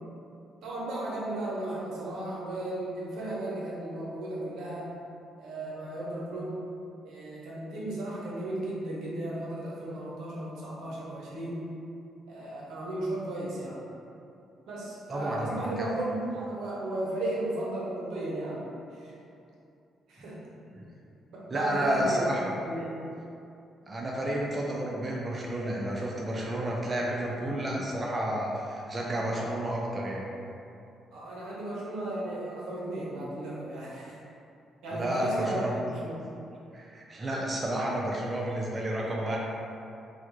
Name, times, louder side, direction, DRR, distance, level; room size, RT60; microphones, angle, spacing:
voice 1, 0.6-4.9 5.4-6.6 7.0-11.6 12.3-13.8 14.7-18.6 18.9-19.1 20.1-20.4 21.3-22.4 22.6-22.9 31.1-34.2 34.8-36.2, right 1 dB, 80° right, -6 dB, 0.8 m, -35 dB
voice 2, 15.1-15.6 20.7-20.8 21.5-22.4 23.9-30.2 34.9-35.7 36.7-39.4, right 1 dB, 30° right, -3 dB, 0.4 m, -31 dB
3.4 x 2.2 x 3.1 m, 2.6 s
cardioid pair, 90°, 0 cm